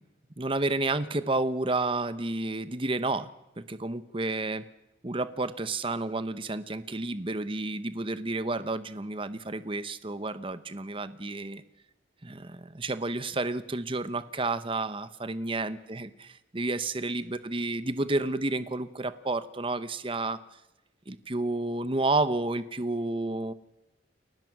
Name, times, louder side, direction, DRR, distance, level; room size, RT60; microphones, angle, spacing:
voice 1, 0.4-3.3 3.6-4.6 5.0-11.6 12.2-20.4 21.1-23.5, right 2 dB, 30° right, 13 dB, 0.9 m, -31 dB
30.0 x 15.5 x 6.1 m, 0.92 s
head